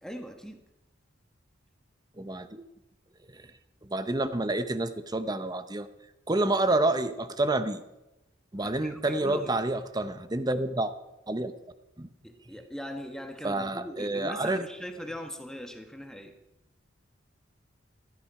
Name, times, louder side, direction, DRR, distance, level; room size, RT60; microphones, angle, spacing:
voice 1, 0.0-0.6 8.6-9.5 12.2-16.3, equal, 5° left, 5 dB, 1.4 m, -40 dB
voice 2, 2.2-2.6 3.3-3.4 3.9-5.9 6.3-7.8 8.5-10.9 11.3-11.5 12.0-12.1 13.4-14.6, right 2 dB, 20° right, 11 dB, 0.8 m, -28 dB
16.0 x 13.5 x 4.9 m, 0.98 s
head